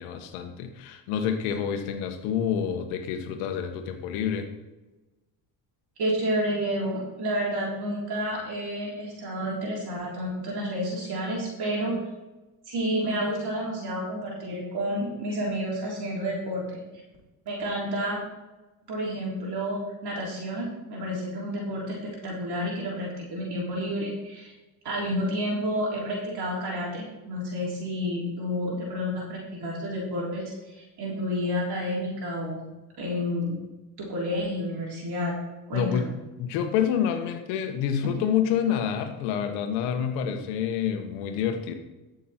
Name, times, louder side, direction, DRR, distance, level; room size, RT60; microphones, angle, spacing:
voice 1, 0.0-4.5 35.7-36.1 36.4-41.7, left 8 dB, 85° left, 6 dB, 1.6 m, -28 dB
voice 2, 6.0-12.1 12.7-16.8 17.5-18.2 18.9-24.5 24.8-32.7 33.0-33.6 34.0-35.3 35.7-36.1, equal, 55° right, -4 dB, 3.7 m, -30 dB
13.5 x 6.6 x 4.4 m, 1.1 s
supercardioid pair, 80°, 46 cm